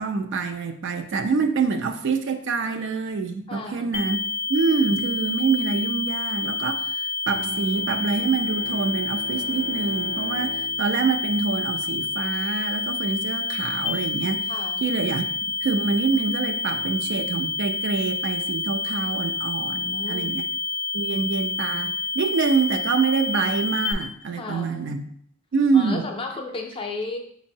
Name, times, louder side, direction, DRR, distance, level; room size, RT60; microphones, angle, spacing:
voice 1, 0.0-4.2 4.5-14.5 14.8-15.3 15.6-20.4 20.9-25.0 25.5-26.0, right 4 dB, 60° right, 6 dB, 0.4 m, -25 dB
voice 2, 3.5-4.1 14.5-14.9 19.7-20.4 24.3-25.0 25.7-27.2, left 3 dB, 25° left, 2 dB, 0.4 m, -34 dB
sound 1, 3.9-23.9, left 3 dB, 80° left, 0.4 m, -28 dB
Bowed string instrument, 7.3-12.3, left 1 dB, 85° right, 0.7 m, -41 dB
5.9 x 2.0 x 2.6 m, 0.65 s
head